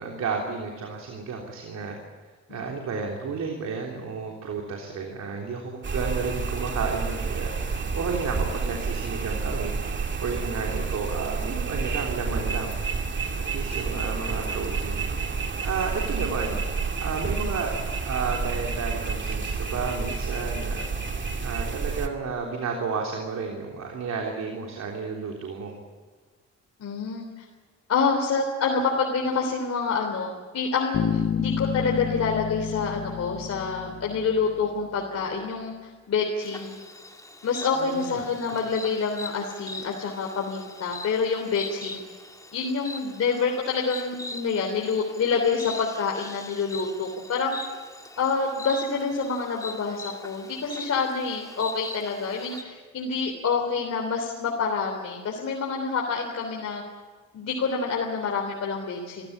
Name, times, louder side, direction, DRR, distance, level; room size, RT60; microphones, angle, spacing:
voice 1, 0.0-1.9 2.5-9.7 10.2-12.8 13.5-15.0 15.6-16.6 17.0-17.7 18.0-25.7 37.8-38.2, right 5 dB, 65° right, 1 dB, 3.5 m, -32 dB
sound 1, 5.8-22.1, right 4 dB, 40° right, 2.5 m, -29 dB
voice 2, 26.8-27.3 27.9-36.8 37.4-42.0 42.5-47.6 48.2-56.8 57.3-59.3, left 5 dB, 55° left, 0 dB, 3.6 m, -27 dB
Bass guitar, 30.9-34.6, left 8 dB, 35° left, 0.7 m, -30 dB
Insect, 36.4-52.6, left 2 dB, 10° left, 2.5 m, -41 dB
25.0 x 15.5 x 8.8 m, 1.5 s
cardioid pair, 90°, 30 cm